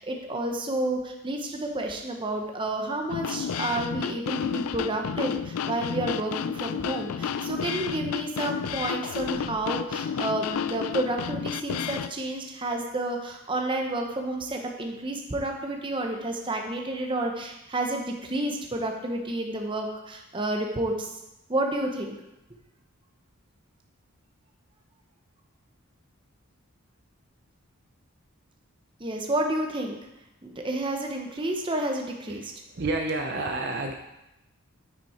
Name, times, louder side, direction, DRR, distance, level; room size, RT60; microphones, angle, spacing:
voice 1, 0.0-21.1 21.5-22.2 29.0-30.0 30.4-32.5, right 1 dB, 20° right, 2 dB, 0.9 m, -30 dB
sound 1, 3.1-12.1, left 7 dB, 85° left, 0.4 m, -31 dB
voice 2, 32.3-33.9, right 2 dB, 50° right, 3 dB, 0.6 m, -30 dB
9.2 x 5.9 x 4.3 m, 0.91 s
head